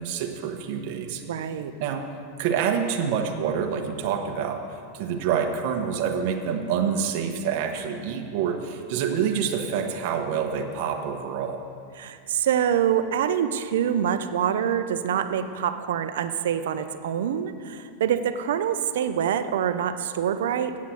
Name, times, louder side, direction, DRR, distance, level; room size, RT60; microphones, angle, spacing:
voice 1, 0.0-1.2 1.8-2.0 2.4-4.6 4.9-11.6, right 7 dB, 55° right, 4 dB, 1.1 m, -27 dB
voice 2, 1.2-1.7 12.0-20.8, right 9 dB, 80° right, 10 dB, 0.6 m, -25 dB
8.5 x 7.3 x 7.7 m, 2.3 s
supercardioid pair, 150°, 0 cm